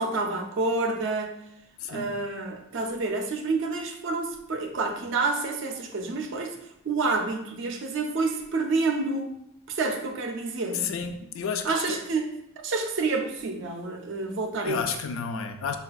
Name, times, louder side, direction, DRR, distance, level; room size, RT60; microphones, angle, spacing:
voice 1, 0.0-1.3 1.9-6.6 6.9-9.3 9.7-10.9 11.6-12.3 12.6-14.8, right 3 dB, 60° right, 4 dB, 0.4 m, -28 dB
voice 2, 1.8-2.1 10.7-12.0 14.6-15.8, left 6 dB, 65° left, 7 dB, 0.3 m, -31 dB
4.0 x 2.3 x 2.3 m, 0.77 s
head